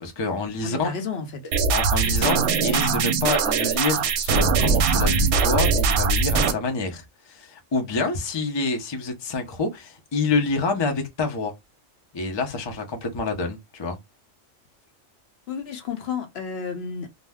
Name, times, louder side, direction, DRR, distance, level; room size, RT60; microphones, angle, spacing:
voice 1, 0.0-0.9 1.7-11.5 12.1-14.0, left 3 dB, 40° left, 0.4 m, -27 dB
voice 2, 0.6-1.4 2.0-2.3 15.5-17.1, left 5 dB, 60° left, 0.8 m, -32 dB
sound 1, 1.5-6.5, right 5 dB, 65° right, 0.8 m, -21 dB
2.5 x 2.1 x 3.4 m
omnidirectional pair, 1.4 m